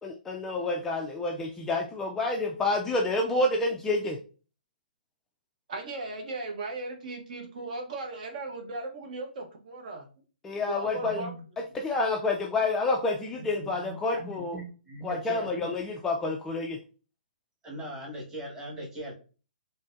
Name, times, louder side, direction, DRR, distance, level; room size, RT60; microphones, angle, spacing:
voice 1, 0.0-4.2 10.4-11.2 11.7-14.6 15.0-16.8, left 2 dB, 10° left, 0 dB, 0.3 m, -28 dB
voice 2, 5.7-10.1 10.7-11.3, right 2 dB, 50° right, 3 dB, 0.9 m, -37 dB
voice 3, 10.8-11.4 13.3-15.7 17.6-19.1, right 1 dB, 10° right, -4 dB, 1.2 m, -40 dB
3.9 x 2.7 x 2.5 m, 0.36 s
hypercardioid pair, 155°, 5 cm